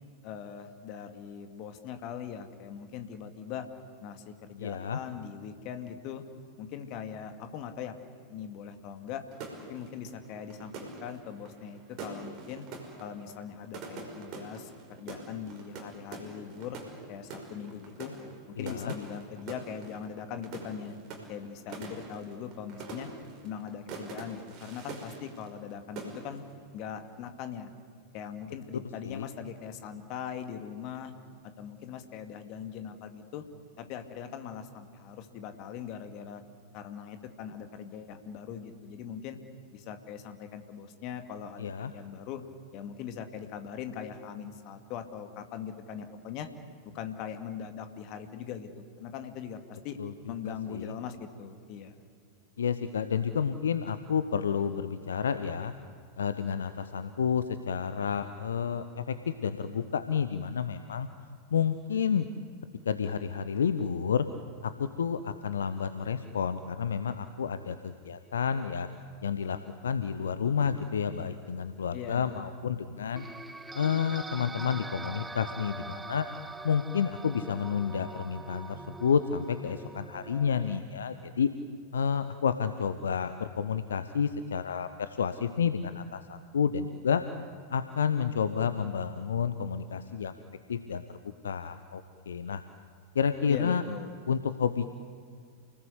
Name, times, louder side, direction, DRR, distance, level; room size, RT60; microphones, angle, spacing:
voice 1, 0.2-3.7 4.0-6.2 6.6-7.9 8.3-9.2 9.7-12.7 13.0-16.8 17.1-18.1 18.5-21.0 21.3-23.1 23.4-26.4 26.7-27.7 28.1-31.1 31.6-33.4 33.8-36.4 36.7-39.4 39.7-42.4 42.7-46.5 46.9-50.0 50.3-52.0 71.9-72.4 93.5-94.2, left 8 dB, 40° left, 7 dB, 2.3 m, -41 dB
voice 2, 4.6-5.0 18.6-18.9 29.0-29.3 41.6-41.9 50.0-50.1 50.4-50.9 52.6-55.7 56.2-61.1 61.5-62.3 62.9-64.3 64.6-68.9 69.2-69.6 69.8-73.3 73.7-76.3 76.6-81.5 81.9-87.2 87.7-90.3 90.7-91.0 91.4-92.6 93.1-93.8 94.3-94.9, left 7 dB, 65° left, 11 dB, 0.9 m, -30 dB
sound 1, 9.3-25.7 26.0-26.5, right 3 dB, 40° right, 5.4 m, -44 dB
sound 2, 73.2-80.8, right 3 dB, 10° right, 0.6 m, -43 dB
29.0 x 19.5 x 8.2 m, 2.2 s
figure-of-eight pair, 90°, 0 cm